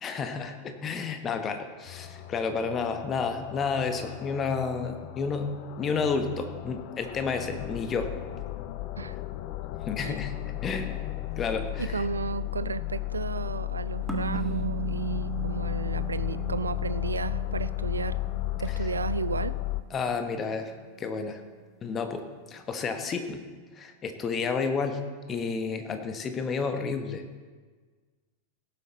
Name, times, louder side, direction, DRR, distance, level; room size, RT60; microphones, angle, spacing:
voice 1, 0.0-5.5 5.8-8.1 9.9-10.3 10.6-12.0 19.9-20.7 21.0-21.4 21.8-23.4 23.7-25.0 25.3-27.2, left 5 dB, 25° left, 7 dB, 1.2 m, -31 dB
sound 1, 1.9-19.8, left 16 dB, 45° left, 0.6 m, -34 dB
voice 2, 11.8-18.2 18.6-19.5, right 5 dB, 75° right, 16 dB, 0.4 m, -33 dB
sound 2, 14.1-20.6, right 11 dB, ahead, 1.5 m, -38 dB
17.5 x 7.9 x 4.3 m, 1.5 s
figure-of-eight pair, 90°, 0 cm